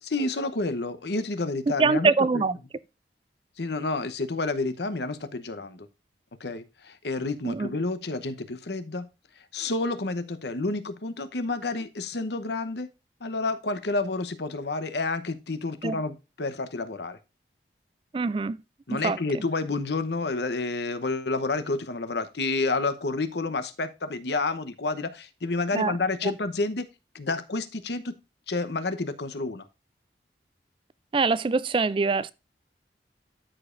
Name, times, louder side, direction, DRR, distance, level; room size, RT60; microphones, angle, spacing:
voice 1, 0.0-2.4 3.6-5.9 6.4-9.1 9.4-12.9 13.2-17.2 18.9-26.9 27.1-28.1 28.5-29.7, left 3 dB, 75° left, 0.9 m, -29 dB
voice 2, 1.8-2.6 7.4-7.7 15.8-16.0 18.1-18.6 18.9-19.2 25.7-25.9 26.2-26.3 31.1-32.3, right 4 dB, 30° right, 0.3 m, -24 dB
13.0 x 5.0 x 2.5 m
head